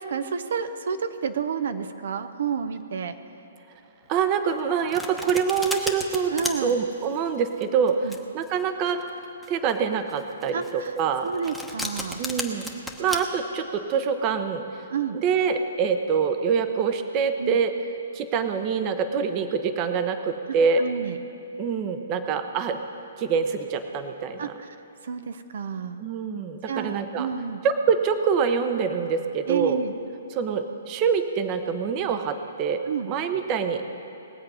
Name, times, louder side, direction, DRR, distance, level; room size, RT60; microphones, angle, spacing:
voice 1, 0.0-3.2 6.3-6.8 8.0-8.2 10.5-10.9 11.2-12.2 14.9-15.2 17.4-17.6 20.8-21.2 24.4-24.8 25.0-26.0 26.7-27.6 29.5-29.9 32.9-33.1, right 6 dB, 70° right, 10 dB, 0.7 m, -30 dB
voice 2, 4.1-6.3 6.6-9.0 9.5-11.3 12.2-12.7 13.0-14.9 15.2-17.7 18.1-20.8 21.6-22.8 23.2-24.5 26.0-27.3 27.6-29.8 30.3-32.8 33.1-33.8, right 6 dB, 30° right, 8 dB, 0.8 m, -25 dB
Domestic sounds home sounds, 4.5-13.2, left 1 dB, ahead, 1.0 m, -34 dB
20.5 x 7.7 x 5.5 m, 2.8 s
hypercardioid pair, 150°, 0 cm